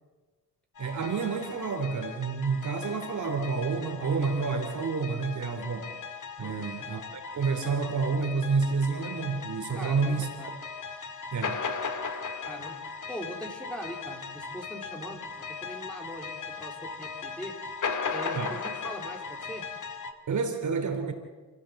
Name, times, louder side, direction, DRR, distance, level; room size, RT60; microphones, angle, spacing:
sound 1, 0.8-20.1, left 5 dB, 50° left, 2.3 m, -38 dB
voice 1, 0.8-5.9 6.4-10.3 11.3-11.6 18.3-18.5 20.3-21.1, right 5 dB, 50° right, 5 dB, 3.3 m, -29 dB
voice 2, 6.4-6.7 9.7-10.5 12.4-12.8 13.1-17.6 18.1-19.6, equal, 5° left, 2 dB, 4.0 m, -41 dB
28.0 x 15.0 x 7.8 m, 1.3 s
cardioid pair, 120°, 38 cm